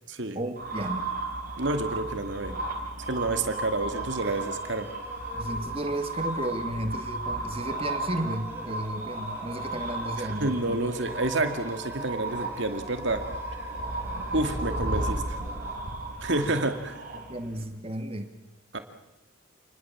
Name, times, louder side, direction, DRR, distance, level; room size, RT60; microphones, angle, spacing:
voice 1, 0.4-1.1 2.5-2.7 5.3-10.8 16.4-16.5 17.1-18.3, right 1 dB, 30° right, 7 dB, 2.1 m, -33 dB
sound 1, 0.6-17.6, right 2 dB, 45° right, 4.1 m, -34 dB
voice 2, 1.6-2.5 3.0-4.9 10.2-13.2 14.3-15.4 16.2-17.0 18.7-18.8, right 2 dB, 60° right, 7 dB, 2.4 m, -29 dB
sound 2, 3.9-16.0, right 1 dB, 10° right, 3.8 m, -48 dB
28.0 x 20.0 x 7.4 m, 0.87 s
head